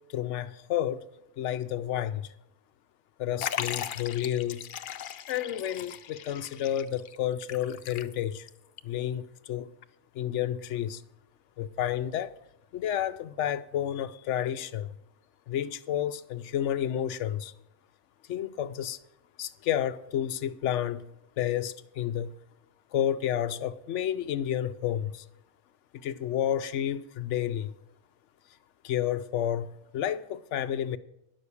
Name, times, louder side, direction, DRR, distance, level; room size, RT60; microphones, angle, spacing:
voice 1, 0.1-1.0 1.4-2.3 3.2-4.7 5.3-8.5 8.8-9.7 10.1-11.0 11.6-12.3 12.7-15.0 15.5-17.5 18.3-19.0 19.4-21.0 21.4-22.3 22.9-25.2 25.9-27.7 28.8-31.0, left 10 dB, 70° left, 0.8 m, -30 dB
Liquid, 3.4-8.5 8.8-8.9 9.8-9.9, left 9 dB, 90° left, 0.4 m, -38 dB
10.5 x 6.4 x 8.3 m
omnidirectional pair, 1.4 m